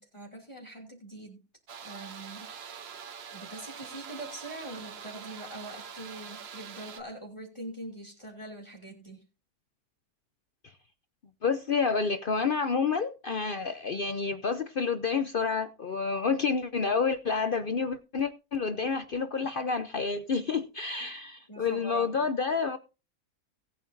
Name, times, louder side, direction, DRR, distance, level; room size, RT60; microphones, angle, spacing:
voice 1, 0.0-1.4 1.8-2.8 3.3-9.2 21.5-22.3, right 2 dB, 20° left, 2.7 m, -43 dB
sound 1, 1.7-7.0, right 7 dB, 50° right, 1.0 m, -44 dB
voice 2, 11.4-22.8, left 5 dB, 50° left, 0.7 m, -29 dB
18.5 x 8.9 x 2.6 m
omnidirectional pair, 1.5 m